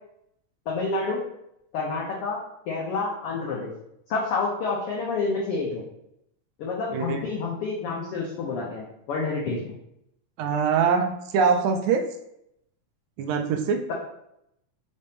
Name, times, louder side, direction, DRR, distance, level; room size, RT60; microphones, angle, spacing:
voice 1, 0.7-1.2 1.7-2.4 2.7-3.7 4.1-5.8 6.6-9.6, left 3 dB, 85° left, -3 dB, 1.2 m, -28 dB
voice 2, 10.4-12.0 13.2-13.8, right 6 dB, 80° right, 5 dB, 1.8 m, -23 dB
5.1 x 2.7 x 3.4 m, 0.78 s
omnidirectional pair, 3.4 m